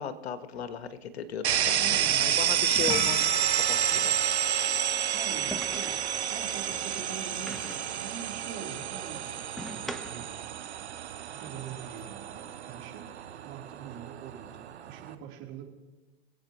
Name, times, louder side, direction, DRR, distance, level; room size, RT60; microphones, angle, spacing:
voice 1, 0.0-4.2, left 7 dB, 75° left, 11 dB, 1.3 m, -37 dB
sound 1, 0.5-0.7 2.7-3.5 5.5-6.1 7.5-8.0 9.6-10.4, equal, ahead, 0.8 m, -41 dB
sound 2, 1.4-15.1, right 10 dB, 85° right, 0.9 m, -30 dB
voice 2, 1.8-2.4 5.1-9.3 9.7-10.3 11.3-15.7, right 8 dB, 50° right, -1 dB, 3.6 m, -43 dB
Percussion / Church bell, 2.9-8.1, left 4 dB, 40° left, 2.7 m, -40 dB
25.5 x 8.6 x 3.1 m, 1.1 s
hypercardioid pair, 110°, 32 cm